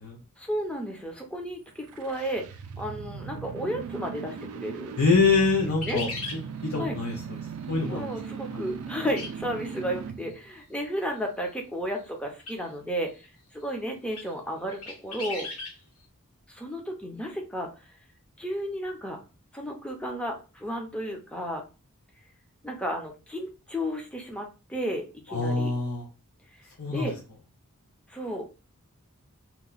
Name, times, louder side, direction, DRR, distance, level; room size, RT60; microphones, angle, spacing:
voice 1, 0.4-2.5 2.8-5.0 5.8-6.0 6.8-6.9 7.9-13.1 13.5-15.5 16.5-17.9 18.4-19.2 19.5-21.6 22.6-25.7 26.9-27.1 28.1-28.5, equal, 5° left, 1 dB, 0.5 m, -33 dB
sound 1, 1.7-10.4, right 6 dB, 75° right, 0.4 m, -38 dB
voice 2, 5.0-7.2 7.7-8.1 8.5-8.6 25.3-26.1 26.8-27.1, left 4 dB, 70° left, -1 dB, 0.7 m, -25 dB
sound 2, 5.6-6.4 9.2-9.3 9.6-9.7 12.4-12.6 13.2-13.3 14.1-14.3 14.7-15.7, left 3 dB, 85° left, 1.2 m, -36 dB
2.9 x 2.2 x 3.9 m, 0.32 s
head